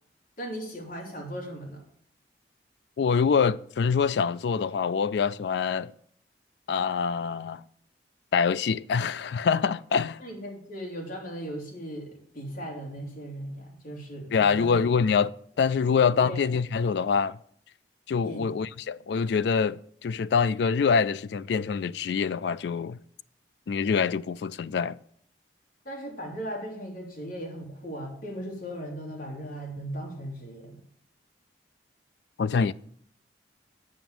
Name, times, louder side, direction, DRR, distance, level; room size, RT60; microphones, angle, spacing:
voice 1, 0.4-1.8 10.2-14.8 15.8-16.4 18.2-18.5 25.8-30.8, equal, 55° left, 2.8 m, -38 dB
voice 2, 3.0-5.9 6.7-7.6 8.3-10.2 14.3-17.4 18.1-23.0 23.7-25.0 32.4-32.7, left 6 dB, 70° left, 0.3 m, -25 dB
7.7 x 5.9 x 7.1 m
head